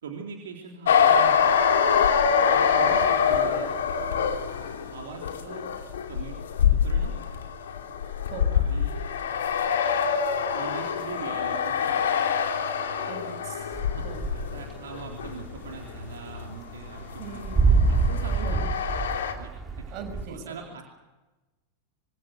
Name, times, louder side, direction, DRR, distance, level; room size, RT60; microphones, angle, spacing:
voice 1, 0.0-1.8 2.5-3.7 4.9-5.7 6.1-6.4 6.6-7.1 8.5-9.0 10.5-12.1 13.9-14.1 14.3-18.8 19.3-20.0 20.3-20.8, right 5 dB, 65° right, 1 dB, 3.6 m, -41 dB
sound 1, 0.9-16.5 16.8-19.3, left 7 dB, 65° left, 2.8 m, -25 dB
voice 2, 13.0-13.8 14.0-14.2 17.2-17.9 18.4-18.7 19.9-20.5, right 5 dB, 40° right, 5 dB, 6.8 m, -40 dB
sound 2, 13.7-14.7 15.0-20.2, right 4 dB, 15° right, 4.0 m, -25 dB
25.5 x 24.5 x 6.5 m, 1.1 s
figure-of-eight pair, 90°, 0 cm